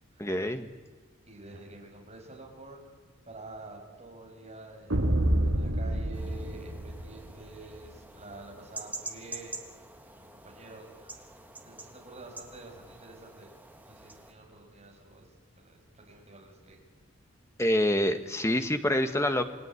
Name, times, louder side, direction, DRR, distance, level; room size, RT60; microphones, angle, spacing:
voice 1, 0.2-0.7 17.6-19.4, left 1 dB, 15° left, 7 dB, 1.5 m, -26 dB
voice 2, 1.3-2.8 3.3-4.9 5.4-9.6 10.1-13.5 13.8-15.2 15.6-16.8, right 2 dB, 30° right, 0 dB, 6.1 m, -48 dB
sound 1, 4.9-7.5, right 1 dB, 75° right, 2.0 m, -28 dB
sound 2, 6.1-14.3, right 2 dB, 10° right, 1.5 m, -46 dB
28.5 x 20.0 x 9.8 m, 1.4 s
head